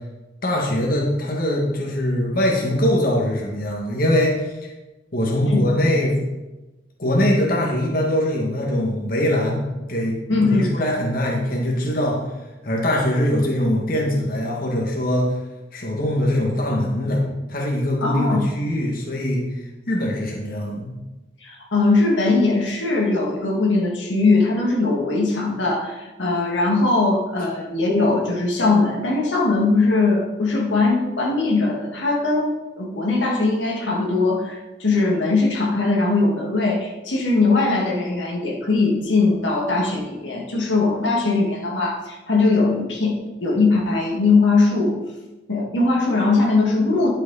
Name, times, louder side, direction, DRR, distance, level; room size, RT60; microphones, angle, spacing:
voice 1, 0.4-4.7 5.1-6.1 7.0-12.2 12.6-15.3 15.7-17.2 17.5-19.4 19.9-20.9, left 1 dB, 50° left, -2 dB, 1.8 m, -22 dB
voice 2, 10.3-10.7 18.0-18.5 21.4-32.5 32.8-45.0 45.5-47.1, left 3 dB, 90° left, -2 dB, 2.0 m, -20 dB
11.0 x 6.4 x 4.1 m, 1.1 s
head